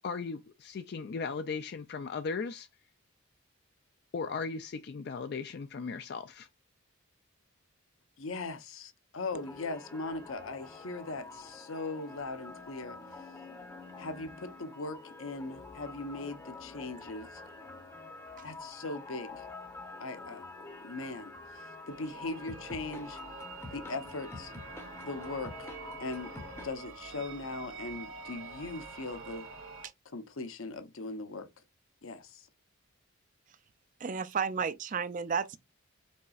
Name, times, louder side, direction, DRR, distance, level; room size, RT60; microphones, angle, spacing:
voice 1, 0.0-2.7 4.1-6.5, left 5 dB, 50° left, 0.3 m, -37 dB
voice 2, 8.2-13.0 14.0-17.4 18.4-19.4 20.0-20.4 20.8-23.2 23.7-24.5 25.0-25.7 26.0-26.3 26.6-29.5 30.1-31.5 32.0-32.5, left 3 dB, 70° left, 0.8 m, -39 dB
sound 1, 9.3-26.7, left 3 dB, 10° left, 0.7 m, -47 dB
sound 2, 21.9-29.9, right 4 dB, 65° right, 1.5 m, -47 dB
voice 3, 34.0-35.6, right 6 dB, 35° right, 0.3 m, -32 dB
5.3 x 4.1 x 2.3 m
head